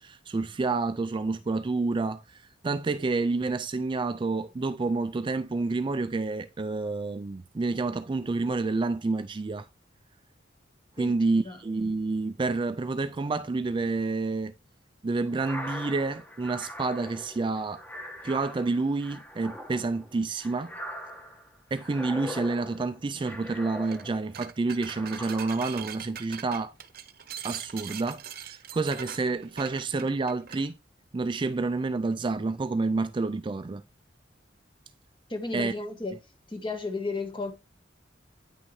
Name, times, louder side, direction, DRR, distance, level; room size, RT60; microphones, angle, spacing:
voice 1, 0.0-9.7 11.0-14.5 15.0-17.8 18.2-20.7 21.7-26.7 27.4-30.8 31.1-33.8 35.5-35.7, right 3 dB, 25° right, 0.3 m, -29 dB
voice 2, 11.0-11.6 35.3-36.2 36.5-37.5, left 3 dB, 25° left, 1.8 m, -34 dB
sound 1, 15.3-24.4 24.8-25.8, equal, 10° left, 1.4 m, -42 dB
sound 2, 23.8-24.1 24.3-30.7, right 9 dB, 55° right, 0.8 m, -41 dB
9.4 x 6.2 x 3.1 m
head